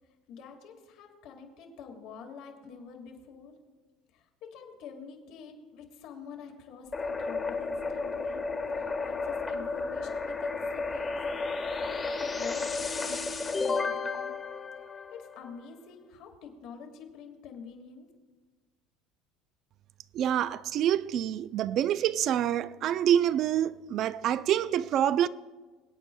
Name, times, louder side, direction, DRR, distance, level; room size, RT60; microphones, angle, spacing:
voice 1, 0.3-3.5 4.1-8.5 8.7-11.2 11.8-14.3 15.1-18.1, left 6 dB, 65° left, 1.9 m, -47 dB
sound 1, 6.9-15.6, left 4 dB, 20° left, 1.4 m, -33 dB
voice 2, 20.1-25.3, right 10 dB, 50° right, 0.4 m, -26 dB
23.0 x 8.7 x 2.2 m
supercardioid pair, 120°, 0 cm